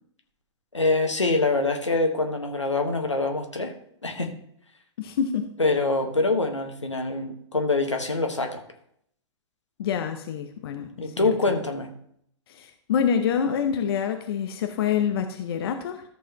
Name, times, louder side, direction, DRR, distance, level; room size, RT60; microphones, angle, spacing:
voice 1, 0.7-3.7 4.0-4.3 5.6-8.6 11.0-11.9, left 3 dB, 85° left, 4 dB, 1.4 m, -25 dB
voice 2, 5.0-5.5 9.8-11.3 12.5-16.0, left 7 dB, 55° left, 6 dB, 0.9 m, -26 dB
14.0 x 6.7 x 3.0 m, 0.69 s
figure-of-eight pair, 105°, 15 cm